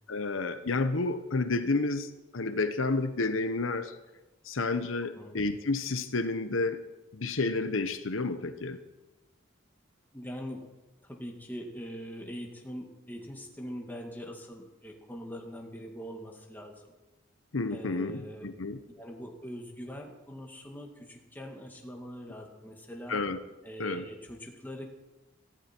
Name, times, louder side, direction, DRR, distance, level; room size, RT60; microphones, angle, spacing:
voice 1, 0.1-4.0 4.4-6.8 7.1-8.8 17.5-18.8 23.1-23.4 23.8-24.0, left 3 dB, 85° left, 10 dB, 0.9 m, -30 dB
voice 2, 10.1-10.7 11.0-16.9 17.7-18.5 19.0-23.2 23.6-24.8, equal, 10° left, 1 dB, 2.1 m, -42 dB
17.5 x 15.0 x 4.5 m, 1.1 s
head